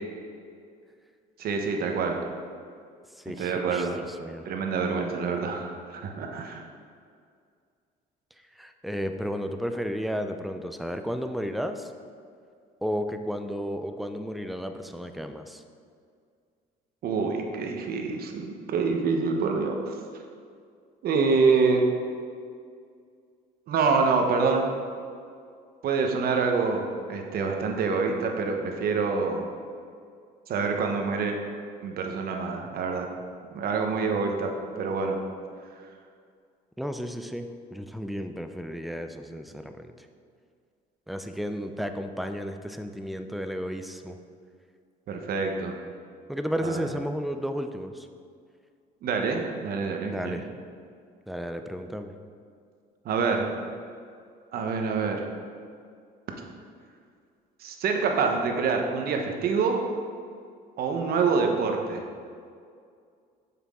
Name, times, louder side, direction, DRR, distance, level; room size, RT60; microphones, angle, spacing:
voice 1, 1.4-2.2 3.4-4.0 4.4-6.6 17.0-19.9 21.0-21.9 23.7-24.7 25.8-29.4 30.5-31.4 31.8-33.1 33.5-34.5 34.8-35.2 45.1-45.7 46.6-46.9 49.0-50.4 53.0-53.5 54.5-55.3 57.6-59.8 60.8-62.0, right 4 dB, 65° right, 3 dB, 1.0 m, -26 dB
voice 2, 3.2-4.4 8.6-11.9 12.8-15.6 36.8-39.9 41.1-44.2 46.3-48.1 50.1-50.5 51.3-52.1, equal, ahead, 7 dB, 0.4 m, -33 dB
7.0 x 5.9 x 3.7 m, 2.2 s
cardioid pair, 110°, 17 cm